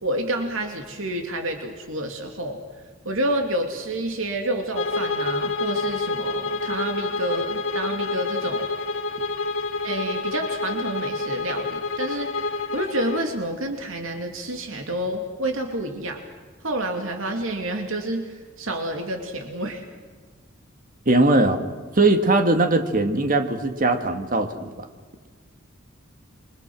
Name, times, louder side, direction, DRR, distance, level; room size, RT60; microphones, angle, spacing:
voice 1, 0.0-2.6 3.0-8.7 9.8-16.2 16.6-19.8, right 1 dB, 75° right, 3 dB, 2.7 m, -29 dB
Bowed string instrument, 4.8-13.3, left 3 dB, 75° left, 2.3 m, -28 dB
voice 2, 21.1-21.6 22.0-24.7, right 2 dB, 40° right, 6 dB, 2.0 m, -20 dB
28.5 x 24.0 x 6.3 m, 1.5 s
head